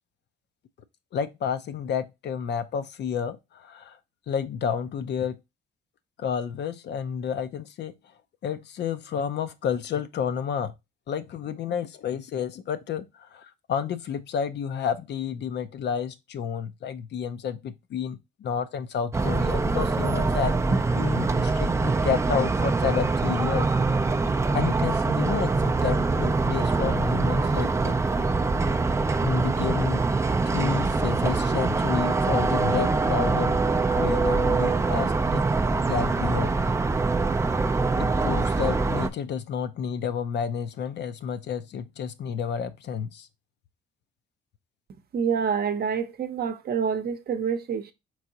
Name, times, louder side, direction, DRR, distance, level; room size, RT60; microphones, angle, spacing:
voice 1, 1.1-4.0 4.3-5.4 6.2-8.0 8.4-10.7 11.1-23.7 24.5-28.3 29.2-30.1 30.5-33.6 33.9-35.4 35.9-36.5 38.0-43.3, left 7 dB, 60° left, 0.5 m, -30 dB
sound 1, 19.1-39.1, right 3 dB, 15° right, 0.3 m, -24 dB
voice 2, 45.1-47.9, right 7 dB, 50° right, 0.7 m, -27 dB
4.6 x 3.7 x 2.7 m
cardioid pair, 90°, 20 cm